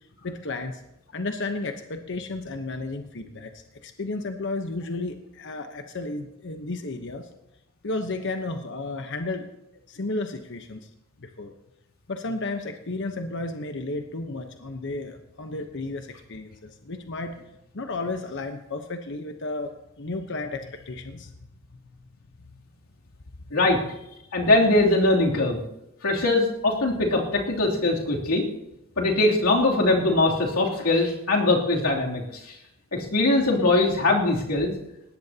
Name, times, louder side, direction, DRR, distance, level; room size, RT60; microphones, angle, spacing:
voice 1, 0.2-0.8 1.1-7.3 7.8-9.5 9.9-10.9 11.2-11.5 12.1-17.4 17.7-21.3 21.7-21.8, left 2 dB, 60° left, 5 dB, 1.0 m, -33 dB
voice 2, 24.3-25.6 26.0-28.4 29.0-32.5 32.9-34.7, left 2 dB, 85° left, -2 dB, 3.0 m, -21 dB
20.0 x 17.5 x 2.9 m, 0.87 s
head